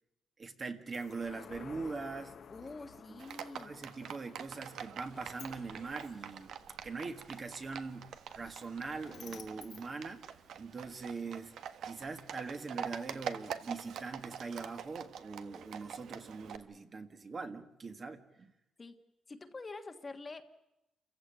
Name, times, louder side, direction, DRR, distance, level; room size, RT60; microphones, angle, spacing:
voice 1, 0.4-2.4 2.6-2.7 3.1-3.2 3.6-6.5 6.8-10.2 10.6-11.5 11.8-18.5, right 4 dB, 30° right, 7 dB, 1.7 m, -42 dB
sound 1, 0.9-7.7 8.1-8.2, left 7 dB, 45° left, 0.9 m, -55 dB
voice 2, 2.5-3.7 18.8-18.9 19.3-20.4, left 3 dB, 20° left, 7 dB, 1.5 m, -46 dB
Livestock farm animals working animals, 3.2-16.6, right 8 dB, 70° right, 1.5 m, -45 dB
Sliding door, 4.9-10.9, left 8 dB, 60° left, 1.8 m, -58 dB
29.0 x 15.5 x 9.1 m, 0.91 s
cardioid pair, 165°, 0 cm